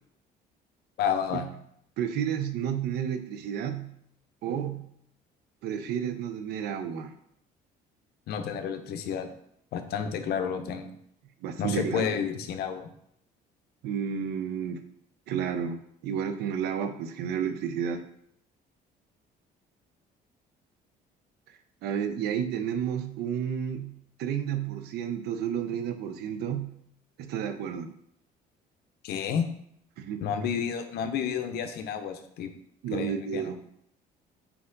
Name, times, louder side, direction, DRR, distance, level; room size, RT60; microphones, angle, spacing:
voice 1, 1.0-1.5 8.3-9.3 9.7-10.9 11.6-12.9 29.0-29.5 30.2-32.5 32.9-33.5, left 7 dB, 70° left, 8 dB, 0.5 m, -30 dB
voice 2, 2.0-3.9 4.4-4.8 5.6-7.2 11.4-12.2 13.8-14.8 15.3-18.0 21.8-23.9 24.2-26.7 27.2-27.9 30.0-30.2 32.8-33.6, right 8 dB, 75° right, 9 dB, 0.5 m, -31 dB
4.2 x 2.8 x 3.8 m, 0.72 s
cardioid pair, 110°, 17 cm